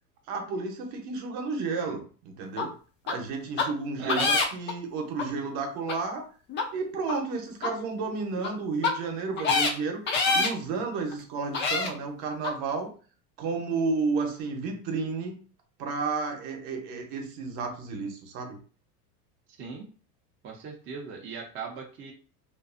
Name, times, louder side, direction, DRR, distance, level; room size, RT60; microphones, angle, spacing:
voice 1, 0.3-2.7 3.0-6.2 6.7-10.0 10.3-12.9 13.4-15.4 15.8-18.6, right 4 dB, 50° right, 3 dB, 0.8 m, -32 dB
sound 1, 2.6-2.7 3.1-3.2 3.6-3.7 4.1-4.7 5.2-5.3 5.9-6.0 6.5-6.6 7.1-7.2 7.6-7.7 8.4-8.5 8.8-8.9 9.4-9.7 10.1-10.5 11.1-11.2 11.5-11.9 12.4-12.5, left 4 dB, 25° left, 0.4 m, -25 dB
voice 2, 4.0-4.3 19.6-19.9 20.4-22.1, right 5 dB, 25° right, -1 dB, 0.5 m, -38 dB
2.6 x 2.3 x 2.4 m, 0.39 s
hypercardioid pair, 100°, 46 cm